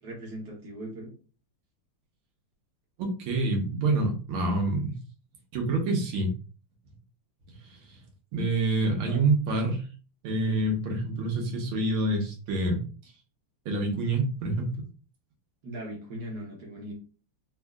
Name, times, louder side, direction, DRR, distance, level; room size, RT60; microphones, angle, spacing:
voice 1, 0.0-1.1 9.1-9.2 15.6-16.9, right 1 dB, 60° right, -2 dB, 1.3 m, -39 dB
voice 2, 3.0-4.9 5.5-6.3 7.6-8.0 8.3-9.8 10.2-13.1 13.7-14.8, right 2 dB, 75° right, 2 dB, 1.8 m, -27 dB
4.2 x 2.7 x 2.3 m, 0.37 s
omnidirectional pair, 2.4 m